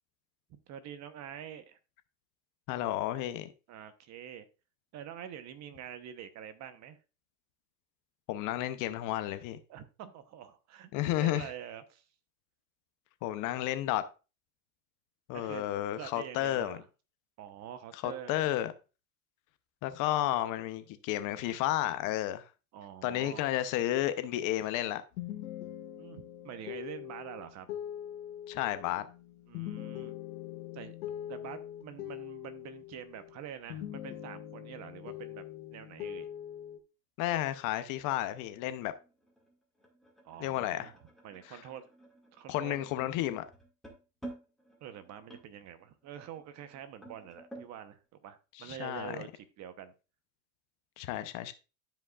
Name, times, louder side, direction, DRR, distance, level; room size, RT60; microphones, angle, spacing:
voice 1, 0.5-1.8 3.7-4.5 4.9-7.0 9.7-12.0 15.3-16.9 17.4-18.4 22.7-23.5 26.0-27.7 29.5-30.2 30.7-30.9 31.3-35.4 35.7-36.3 40.2-41.9 42.3-42.8 44.8-49.9, right 10 dB, 40° right, 0.9 m, -46 dB
voice 2, 2.7-3.5 8.3-9.6 10.9-11.5 13.2-14.0 15.3-16.8 18.0-18.7 19.8-22.4 23.0-25.0 28.5-29.1 37.2-38.9 40.4-40.9 42.5-43.4 48.6-49.2 51.0-51.5, left 13 dB, 45° left, 0.7 m, -32 dB
sound 1, 25.1-33.4 33.7-36.8, left 12 dB, 80° left, 1.2 m, -42 dB
sound 2, 38.0-47.7, right 1 dB, ahead, 2.0 m, -52 dB
12.5 x 5.1 x 2.4 m
supercardioid pair, 130°, 44 cm